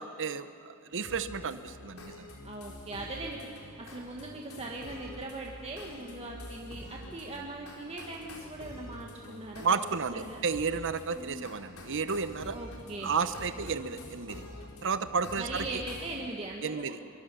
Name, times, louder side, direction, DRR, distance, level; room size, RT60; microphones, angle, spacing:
voice 1, 0.0-2.3 9.6-12.6 13.0-14.4 14.8-15.8 16.6-17.0, right 5 dB, 60° right, 12 dB, 0.9 m, -32 dB
sound 1, 1.0-16.2, left 1 dB, 80° left, 4.0 m, -47 dB
voice 2, 2.4-9.6 10.1-10.4 11.1-11.4 12.5-13.1 15.4-16.9, right 2 dB, 30° right, -1 dB, 1.7 m, -40 dB
25.0 x 23.5 x 7.0 m, 2.6 s
head